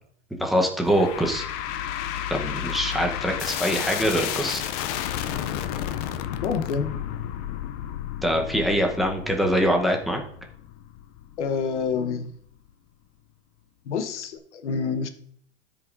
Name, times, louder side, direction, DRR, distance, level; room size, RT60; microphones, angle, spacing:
voice 1, 0.4-1.4 2.3-4.6 8.2-10.2, equal, ahead, 0.8 m, -23 dB
sound 1, 0.8-12.1, left 11 dB, 35° left, 0.4 m, -32 dB
voice 2, 6.4-6.9 11.4-12.3 13.9-15.1, left 5 dB, 90° left, 0.9 m, -27 dB
13.5 x 5.2 x 2.5 m
supercardioid pair, 135°, 34 cm